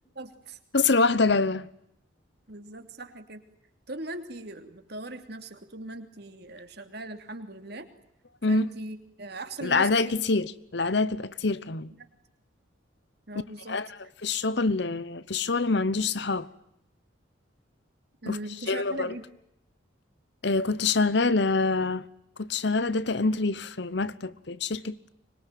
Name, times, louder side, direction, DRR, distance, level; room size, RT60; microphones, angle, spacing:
voice 1, 0.1-0.6 2.5-3.4 3.9-7.9 8.5-10.1 13.3-13.8 18.2-19.2, right 2 dB, 55° right, 3.0 m, -39 dB
voice 2, 0.7-1.7 8.4-8.7 9.6-11.9 13.7-16.5 18.2-18.4 18.7-19.1 20.4-22.0 22.4-25.1, left 3 dB, 60° left, 1.0 m, -26 dB
25.0 x 22.5 x 9.3 m
head